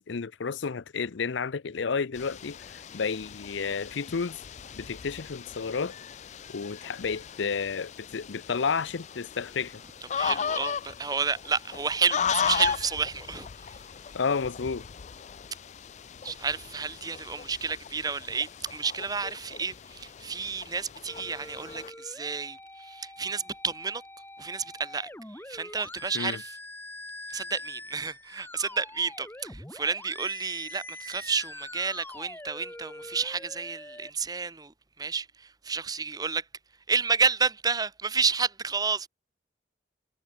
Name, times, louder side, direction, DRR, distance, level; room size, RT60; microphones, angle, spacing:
voice 1, 0.0-4.4 4.8-6.0 6.5-9.8 14.1-14.8 26.1-26.4, left 5 dB, 80° left, 0.6 m, -31 dB
sound 1, 2.1-21.9, left 7 dB, 35° left, 0.4 m, -37 dB
voice 2, 10.1-13.7 16.2-24.0 24.4-26.6 27.3-36.4 36.9-39.1, right 5 dB, 20° right, 0.8 m, -30 dB
sound 2, 21.1-34.1, left 2 dB, 10° left, 2.3 m, -44 dB
head